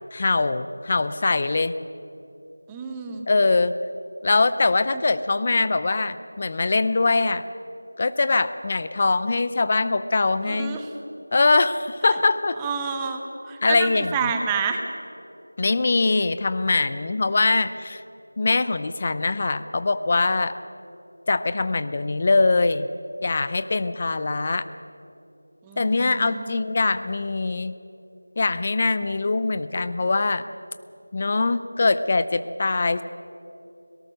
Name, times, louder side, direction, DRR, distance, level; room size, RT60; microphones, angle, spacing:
voice 1, 0.1-1.7 3.3-3.7 4.2-7.4 8.0-10.8 11.3-12.6 13.6-14.3 15.6-18.0 18.4-20.6 21.3-22.9 23.2-24.7 25.8-27.8 28.4-30.4 31.1-33.0, left 3 dB, 25° left, 13 dB, 0.6 m, -22 dB
voice 2, 2.7-3.3 4.9-5.0 10.4-10.9 12.6-14.8 25.6-26.6, right 6 dB, 10° right, 4 dB, 0.8 m, -29 dB
24.0 x 18.5 x 6.4 m, 2.8 s
figure-of-eight pair, 175°, 0 cm